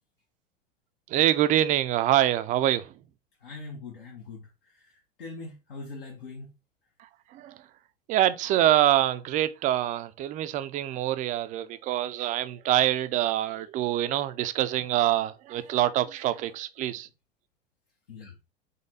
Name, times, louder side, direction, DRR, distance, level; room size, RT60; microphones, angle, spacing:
voice 1, 1.1-2.9 7.0-7.6 8.1-17.1, right 13 dB, 25° right, 0.4 m, -25 dB
voice 2, 3.4-6.5 18.1-18.3, left 3 dB, 65° left, 1.0 m, -42 dB
4.1 x 3.3 x 3.7 m
figure-of-eight pair, 80°, 29 cm